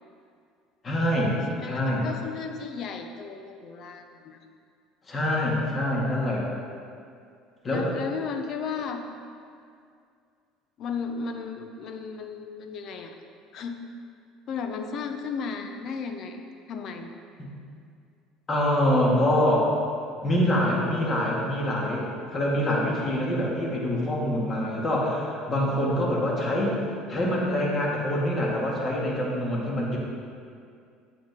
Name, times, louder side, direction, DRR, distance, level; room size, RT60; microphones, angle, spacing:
voice 1, 0.8-1.4 1.6-2.0 5.1-6.5 7.6-7.9 17.4-17.5 18.5-19.7 20.2-26.8 27.1-30.0, left 1 dB, 30° left, -3 dB, 2.1 m, -25 dB
voice 2, 1.5-4.4 7.7-9.0 10.8-13.1 13.5-13.8 14.5-16.4 16.7-17.1, left 5 dB, 55° left, 6 dB, 0.8 m, -34 dB
8.5 x 7.8 x 3.7 m, 2.3 s
supercardioid pair, 105°, 0 cm